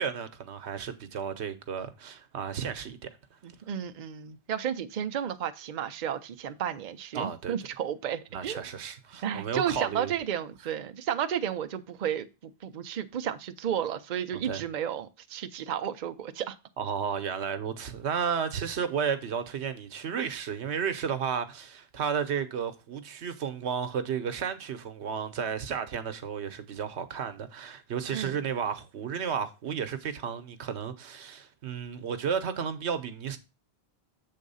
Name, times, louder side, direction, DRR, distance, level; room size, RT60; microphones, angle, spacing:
voice 1, 0.0-3.0 7.1-7.5 8.3-10.1 14.5-14.6 16.8-33.4, right 7 dB, 85° right, 1.1 m, -33 dB
voice 2, 3.4-8.6 9.2-16.6 28.1-28.4, right 9 dB, 50° right, 0.6 m, -33 dB
7.5 x 3.6 x 5.4 m
omnidirectional pair, 1.1 m